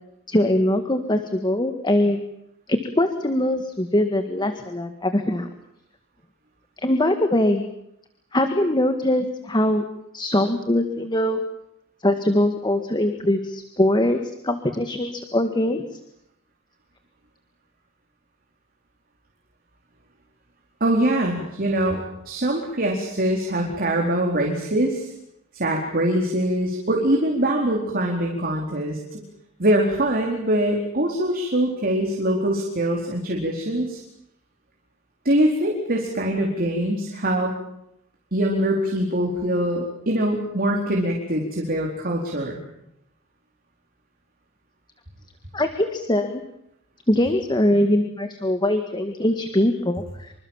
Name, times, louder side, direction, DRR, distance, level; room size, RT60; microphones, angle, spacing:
voice 1, 0.3-2.2 2.7-5.5 6.8-7.6 8.3-9.8 10.1-11.4 12.0-15.8 45.5-46.4 47.1-50.3, left 1 dB, 20° left, 7 dB, 1.8 m, -22 dB
voice 2, 20.8-22.0 22.2-25.1 25.5-29.2 29.6-34.0 35.2-37.5 38.3-42.6, right 1 dB, 45° right, 0 dB, 4.3 m, -23 dB
26.5 x 25.0 x 7.5 m, 0.79 s
head